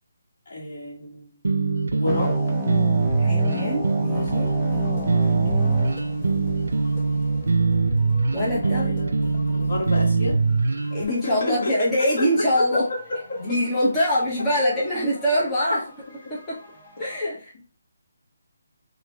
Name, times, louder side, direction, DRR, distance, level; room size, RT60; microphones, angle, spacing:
voice 1, 0.5-1.4 1.9-2.4 5.4-6.0 8.6-10.4 10.8-11.9 12.2-13.5, left 2 dB, 55° left, -3 dB, 1.4 m, -30 dB
sound 1, 1.4-11.0, right 4 dB, 80° right, 0.3 m, -22 dB
sound 2, 2.0-7.0, left 1 dB, 15° right, 0.5 m, -32 dB
voice 2, 3.2-4.5 8.3-9.0 10.9-12.8 13.4-15.8 16.3-16.4 17.0-17.7, equal, 10° left, -8 dB, 0.9 m, -24 dB
sound 3, 4.1-17.2, left 3 dB, 35° left, 1.4 m, -42 dB
2.9 x 2.6 x 3.3 m, 0.37 s
hypercardioid pair, 160°, 0 cm